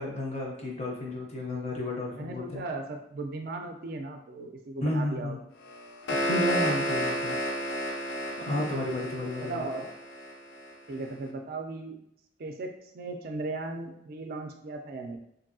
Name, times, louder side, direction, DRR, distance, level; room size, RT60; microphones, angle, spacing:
voice 1, 0.0-2.6 4.8-5.4 6.1-7.4 7.7-9.6, left 1 dB, 35° left, -2 dB, 0.6 m, -33 dB
voice 2, 1.7-5.4 8.5-8.7 9.4-9.9 10.9-12.0 12.4-15.2, right 3 dB, 55° right, 4 dB, 0.4 m, -37 dB
sound 1, 5.7-10.7, equal, 85° left, 0.5 m, -31 dB
2.7 x 2.6 x 2.6 m, 0.74 s
head